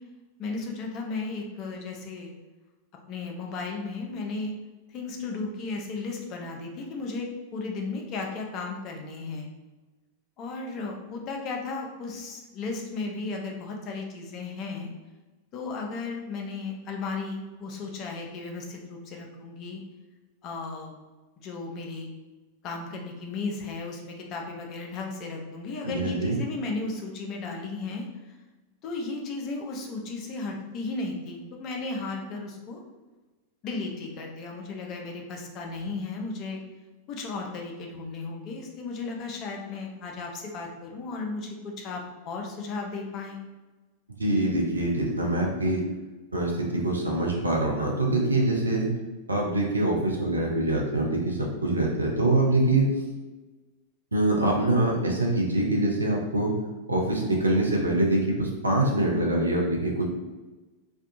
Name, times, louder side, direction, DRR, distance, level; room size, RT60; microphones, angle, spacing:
voice 1, 0.4-2.3 3.1-4.5 4.9-9.5 10.4-14.9 15.5-19.8 20.4-20.9 21.4-22.1 22.6-28.3 28.8-32.8 33.6-36.6 37.1-43.4, left 3 dB, 35° left, 1 dB, 0.5 m, -35 dB
voice 2, 25.8-26.4 44.2-45.8 46.3-48.9 49.3-52.9 54.1-56.5 56.9-60.0, right 2 dB, 80° right, 0 dB, 0.5 m, -24 dB
2.5 x 2.3 x 2.6 m, 1.2 s
figure-of-eight pair, 90°, 0 cm